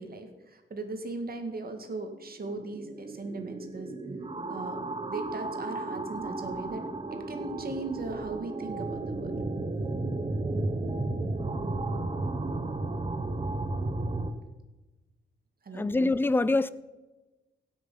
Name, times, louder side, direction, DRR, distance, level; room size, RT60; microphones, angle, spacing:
voice 1, 0.0-3.9 4.5-6.9 7.1-9.3 15.6-15.9, right 3 dB, 45° right, 1.9 m, -38 dB
sound 1, 2.1-14.3, right 2 dB, 25° right, 1.0 m, -33 dB
voice 2, 15.7-16.7, left 2 dB, 10° left, 0.5 m, -25 dB
16.5 x 6.5 x 5.6 m
cardioid pair, 95°, 21 cm